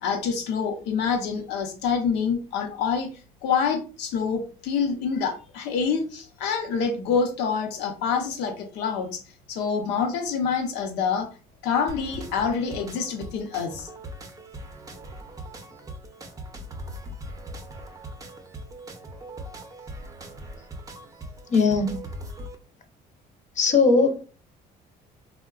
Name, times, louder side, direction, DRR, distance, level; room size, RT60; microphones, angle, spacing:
voice 1, 0.0-3.1 3.4-9.2 9.5-11.3 11.6-13.9, left 6 dB, 90° left, 0.7 m, -26 dB
sound 1, 11.9-22.6, right 1 dB, 20° right, 0.6 m, -40 dB
voice 2, 21.5-22.0 23.6-24.2, left 4 dB, 45° left, 0.6 m, -19 dB
3.5 x 2.1 x 2.3 m
cardioid pair, 110°, 17 cm